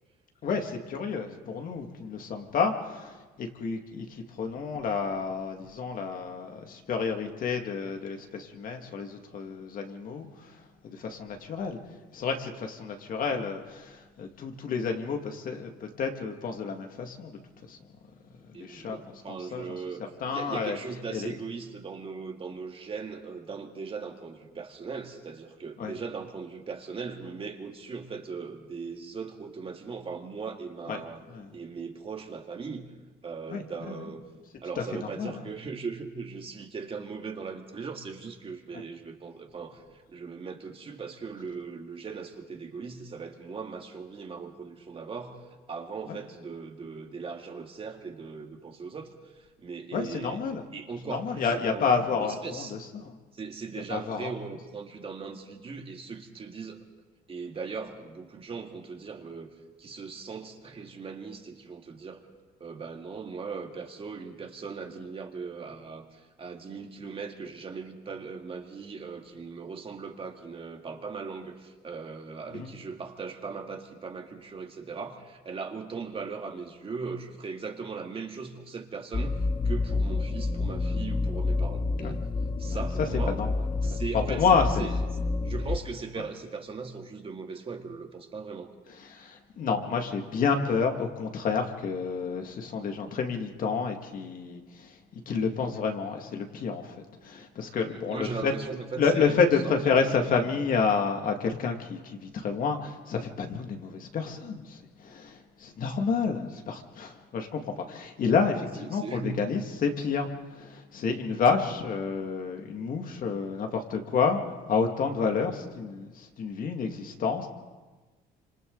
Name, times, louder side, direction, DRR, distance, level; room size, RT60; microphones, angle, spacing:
voice 1, 0.4-10.3 10.8-11.8 12.1-17.3 17.7-17.8 18.6-19.0 19.3-19.6 20.2-20.8 21.1-21.3 25.8-25.9 30.9-31.0 31.3-31.5 33.5-34.1 34.8-34.9 35.2-35.3 49.9-50.7 51.1-52.7 52.9-53.1 53.9-54.3 72.5-72.7 82.0-82.2 82.7-83.5 84.1-84.9 89.1-97.0 97.2-98.5 99.0-114.4 114.7-117.5, left 5 dB, 55° left, 4 dB, 2.3 m, -29 dB
voice 2, 18.5-20.0 20.3-31.2 31.5-32.9 33.2-34.2 34.6-39.8 40.1-45.4 45.7-50.4 50.7-52.8 53.3-56.8 57.3-59.5 59.8-62.2 62.6-79.4 79.6-82.2 82.6-83.4 83.8-84.9 85.4-88.7 97.9-100.5 108.8-109.5, right 5 dB, 35° right, 3 dB, 2.2 m, -39 dB
sound 1, 79.1-85.8, left 3 dB, 25° left, 1.2 m, -29 dB
27.0 x 26.0 x 4.0 m, 1.3 s
cardioid pair, 110°, 17 cm